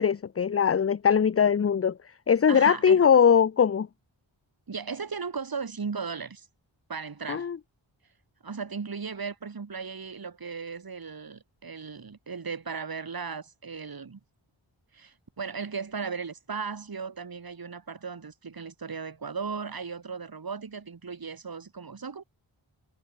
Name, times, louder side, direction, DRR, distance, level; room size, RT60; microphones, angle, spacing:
voice 1, 0.0-2.0 2.3-3.9 7.3-7.6, left 7 dB, 30° left, 0.4 m, -21 dB
voice 2, 2.5-3.1 4.7-6.5 6.9-7.5 8.4-14.2 14.9-22.2, right 5 dB, 45° right, 1.2 m, -36 dB
wide cardioid pair, 55°, 49 cm